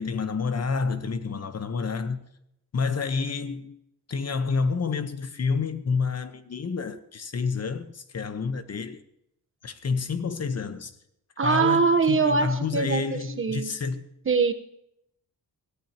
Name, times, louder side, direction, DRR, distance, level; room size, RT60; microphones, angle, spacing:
voice 1, 0.0-2.2 2.7-3.8 4.1-9.0 9.6-11.0 11.4-14.0, left 5 dB, 40° left, 1.1 m, -29 dB
voice 2, 11.4-13.0 13.4-13.7 14.3-14.5, right 4 dB, 30° right, 1.1 m, -22 dB
21.5 x 14.5 x 2.9 m
wide cardioid pair, 130°, 39 cm